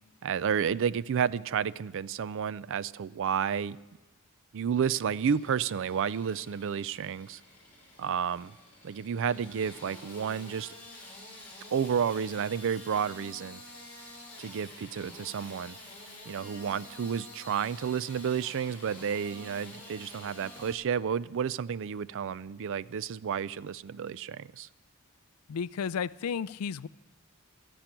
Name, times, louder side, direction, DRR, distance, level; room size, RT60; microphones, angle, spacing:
voice 1, 0.2-3.8 4.5-7.4 8.0-8.5 8.8-10.7 11.7-13.6 14.4-15.8 16.3-24.7, right 7 dB, 60° right, 19 dB, 0.4 m, -31 dB
Engine starting / Sawing, 4.9-20.7, left 1 dB, 10° left, 5.5 m, -49 dB
voice 2, 25.5-26.9, left 6 dB, 80° left, 19 dB, 0.4 m, -33 dB
13.5 x 10.5 x 9.0 m, 1.1 s
head